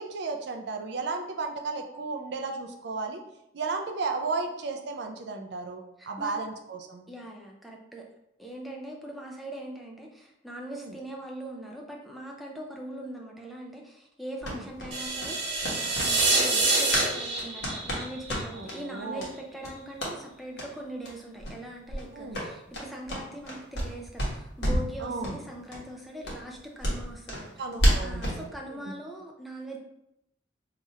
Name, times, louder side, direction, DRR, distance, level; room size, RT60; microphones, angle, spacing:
voice 1, 0.0-3.2 3.5-7.1 10.7-10.9 14.4-14.6 18.5-19.3 22.1-22.5 25.0-25.4 27.6-28.5, right 4 dB, 70° right, 4 dB, 0.4 m, -34 dB
voice 2, 6.0-6.4 7.1-8.0 8.4-27.6 28.0-29.8, right 1 dB, ahead, -1 dB, 0.4 m, -41 dB
sound 1, 14.4-17.1 17.4-18.8 19.2-19.3 19.6-20.1 20.5-20.7 21.0-21.1 21.4-21.6 21.9-23.9 24.2-24.9 25.2-25.4 25.7-25.8 26.2-28.4, equal, 70° left, 1.1 m, -30 dB
sound 2, 14.9-19.0, right 3 dB, 85° right, 1.0 m, -27 dB
2.9 x 2.4 x 4.2 m, 0.82 s
head